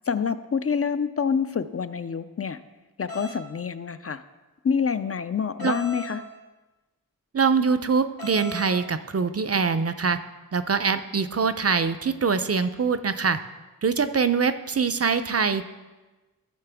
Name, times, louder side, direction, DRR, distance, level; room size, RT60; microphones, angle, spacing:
voice 1, 0.1-2.6 3.0-4.2 4.6-6.2, left 6 dB, 40° left, 12 dB, 0.4 m, -27 dB
sound 1, 3.1-3.4 5.6-6.2 8.2-8.7, equal, 80° left, 2.7 m, -37 dB
voice 2, 7.3-10.2 10.5-13.4 13.8-15.6, right 5 dB, 45° right, 12 dB, 0.5 m, -23 dB
13.5 x 6.6 x 3.4 m, 1.2 s
wide cardioid pair, 75°, 36 cm